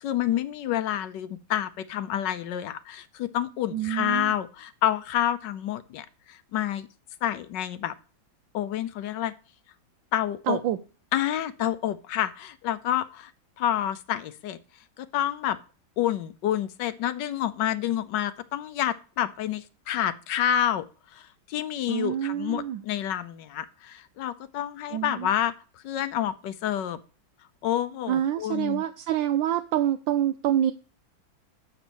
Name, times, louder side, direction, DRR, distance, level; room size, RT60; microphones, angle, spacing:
voice 1, 0.0-6.9 7.2-7.9 8.5-9.3 10.1-10.6 11.1-13.3 13.6-14.6 15.0-15.6 16.0-20.8 21.1-25.5 25.8-27.0 27.6-28.8, left 11 dB, 70° left, 14 dB, 1.3 m, -28 dB
voice 2, 3.7-4.3 10.5-10.8 21.9-22.8 24.9-25.3 28.1-30.7, right 11 dB, 80° right, 8 dB, 1.3 m, -26 dB
7.2 x 7.0 x 7.0 m, 0.36 s
omnidirectional pair, 2.1 m